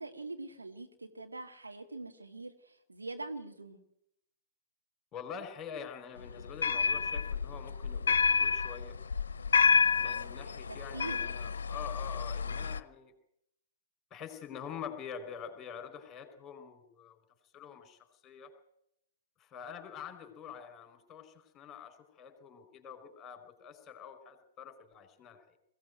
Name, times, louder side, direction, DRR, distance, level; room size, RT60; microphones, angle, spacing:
voice 1, 0.0-3.8 10.7-11.2, right 2 dB, 85° right, 5 dB, 2.0 m, -43 dB
voice 2, 5.1-9.0 9.9-13.1 14.1-18.5 19.4-25.6, left 7 dB, 20° left, 8 dB, 4.7 m, -46 dB
sound 1, 6.2-12.8, left 5 dB, 70° left, 0.7 m, -29 dB
21.0 x 16.5 x 9.2 m, 0.80 s
figure-of-eight pair, 115°, 0 cm